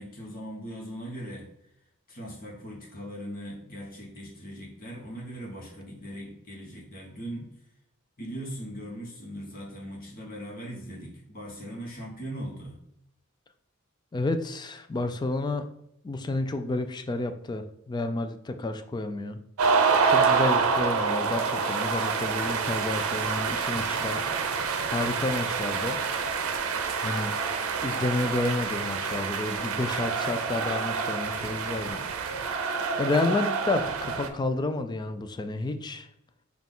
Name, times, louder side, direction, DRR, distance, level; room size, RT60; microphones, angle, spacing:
voice 1, 0.0-1.5 2.1-7.5 8.2-12.8, equal, 45° left, -3 dB, 1.1 m, -39 dB
voice 2, 14.1-15.7 16.0-19.4 20.1-24.2 24.9-26.0 27.0-27.4 27.8-32.1 33.0-36.1, left 2 dB, 20° left, 8 dB, 0.3 m, -30 dB
sound 1, 19.6-34.3, right 5 dB, 85° right, 0.6 m, -27 dB
5.7 x 2.3 x 3.7 m, 0.78 s
head